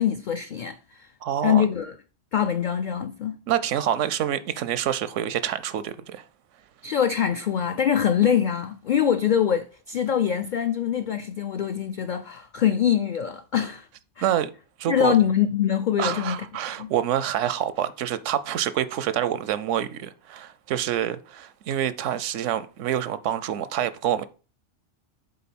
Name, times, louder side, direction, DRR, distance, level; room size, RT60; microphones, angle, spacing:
voice 1, 0.0-1.1 1.4-2.0 2.3-3.4 6.8-13.9 14.2-14.3 14.9-16.5 16.8-16.9, left 9 dB, 55° left, 0.5 m, -24 dB
voice 2, 1.2-1.6 3.5-6.2 14.2-14.5 14.8-15.1 16.0-24.2, right 10 dB, 85° right, 1.0 m, -27 dB
7.7 x 3.7 x 6.0 m
omnidirectional pair, 1.2 m